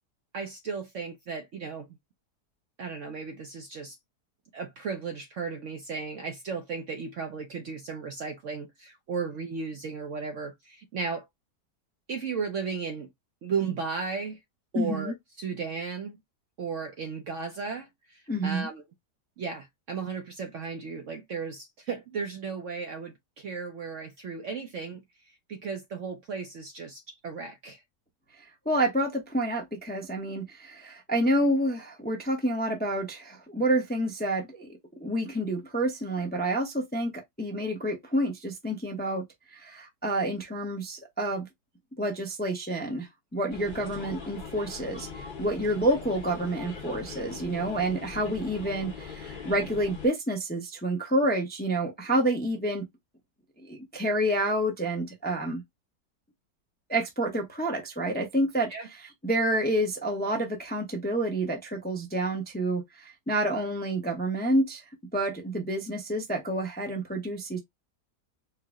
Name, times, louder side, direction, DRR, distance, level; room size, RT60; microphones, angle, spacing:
voice 1, 0.3-1.9 2.8-4.0 4.5-11.3 12.1-13.1 13.4-14.4 14.7-16.2 16.6-18.8 19.4-27.8 58.7-58.9, right 5 dB, 65° right, 0.8 m, -35 dB
voice 2, 14.7-15.1 18.3-18.7 28.7-34.7 35.0-39.2 39.5-41.5 42.0-52.9 53.6-55.6 56.9-58.7 59.2-64.8 65.1-67.6, right 1 dB, 10° left, 0.5 m, -28 dB
sound 1, 43.5-50.1, left 6 dB, 40° left, 0.9 m, -41 dB
4.6 x 2.0 x 3.5 m
omnidirectional pair, 1.8 m